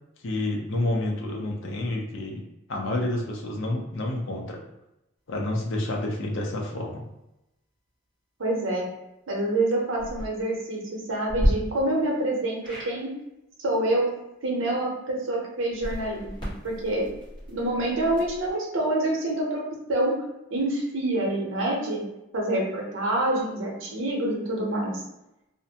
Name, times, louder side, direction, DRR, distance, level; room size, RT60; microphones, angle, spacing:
voice 1, 0.2-2.4 2.7-4.6 5.3-7.0, left 1 dB, 65° left, 0 dB, 0.5 m, -29 dB
voice 2, 8.4-8.9 9.3-13.1 13.6-14.1 14.4-17.1 17.5-20.2 20.5-22.0 22.3-25.0, right 1 dB, 75° right, -2 dB, 0.7 m, -27 dB
sound 1, 9.9-10.3 11.3-11.5 12.6-12.9 15.7-18.5, equal, 20° left, 0.9 m, -31 dB
2.5 x 2.1 x 2.7 m, 0.89 s
head